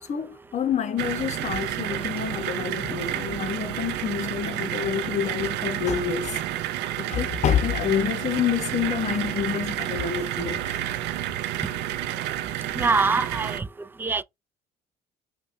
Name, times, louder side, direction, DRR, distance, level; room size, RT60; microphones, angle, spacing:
voice 1, 0.1-6.4 7.0-10.8, left 8 dB, 45° left, 0.9 m, -27 dB
sound 1, 1.0-13.6, right 12 dB, 90° right, 0.5 m, -30 dB
voice 2, 12.8-13.6 14.0-14.2, right 4 dB, 10° right, 0.3 m, -23 dB
5.2 x 2.3 x 2.5 m
cardioid pair, 110°, 17 cm